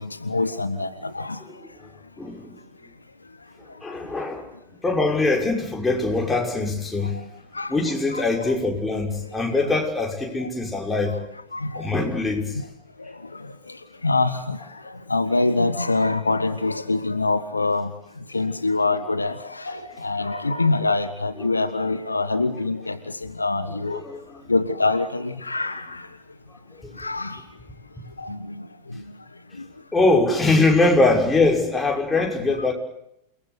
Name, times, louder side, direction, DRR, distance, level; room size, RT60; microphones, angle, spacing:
voice 1, 0.2-1.4 7.5-7.7 8.1-8.2 11.5-11.9 14.0-14.6 15.1-17.9 18.3-23.0 23.2-24.0 24.5-26.0 27.0-27.4 28.2-28.4, left 3 dB, 80° left, 11 dB, 1.4 m, -24 dB
voice 2, 2.2-2.6 3.8-4.5 4.8-7.1 7.7-11.1 11.8-12.6 23.9-24.4 26.8-27.1 28.0-28.1 29.9-32.7, left 2 dB, 10° left, 0 dB, 5.9 m, -22 dB
29.0 x 20.0 x 8.2 m, 0.78 s
figure-of-eight pair, 90°, 0 cm